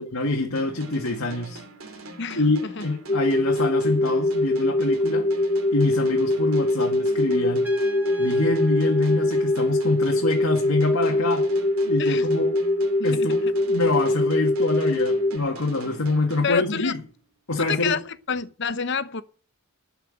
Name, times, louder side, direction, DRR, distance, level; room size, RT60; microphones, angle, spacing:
voice 1, 0.0-1.6 2.4-5.3 5.7-7.7 8.2-11.5 11.9-12.6 13.0-13.4 13.7-17.0 17.5-18.0, left 2 dB, 90° left, 1.9 m, -25 dB
sound 1, 0.6-17.2, right 2 dB, 80° right, 2.6 m, -43 dB
voice 2, 2.2-2.9 12.0-12.3 13.0-13.5 16.4-16.9 17.6-19.2, left 6 dB, 55° left, 0.8 m, -28 dB
sound 2, 3.1-15.4, left 1 dB, 30° left, 1.3 m, -23 dB
Trumpet, 7.6-10.3, right 2 dB, 10° right, 2.0 m, -44 dB
12.5 x 5.9 x 8.8 m
head